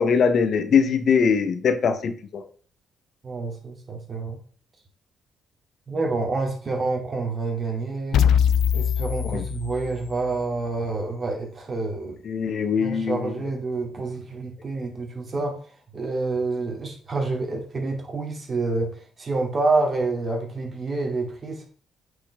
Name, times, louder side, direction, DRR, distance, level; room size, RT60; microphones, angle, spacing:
voice 1, 0.0-2.4 9.2-9.4 12.2-13.3, left 6 dB, 60° left, 10 dB, 0.9 m, -22 dB
voice 2, 3.2-4.4 5.9-8.3 8.7-12.2 12.8-21.7, right 3 dB, 35° right, 2 dB, 2.5 m, -28 dB
sound 1, 8.1-10.2, left 8 dB, 80° left, 0.3 m, -22 dB
8.6 x 5.5 x 3.5 m, 0.43 s
cardioid pair, 90°, 0 cm